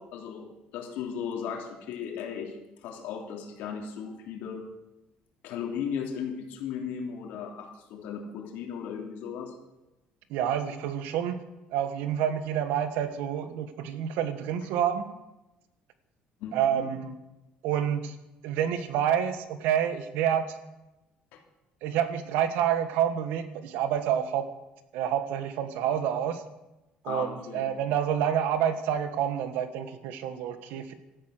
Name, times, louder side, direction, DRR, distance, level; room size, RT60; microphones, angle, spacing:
voice 1, 0.0-2.6 2.8-4.7 5.4-9.5 12.9-13.0 16.4-16.9 21.3-21.4 27.0-27.6, left 7 dB, 75° left, 2 dB, 3.2 m, -36 dB
voice 2, 10.3-15.1 16.5-17.2 17.6-18.1 18.4-20.6 21.8-24.5 24.9-26.4 27.0-30.9, right 9 dB, 85° right, 11 dB, 1.6 m, -28 dB
16.5 x 13.0 x 6.7 m, 1.0 s
cardioid pair, 165°, 3 cm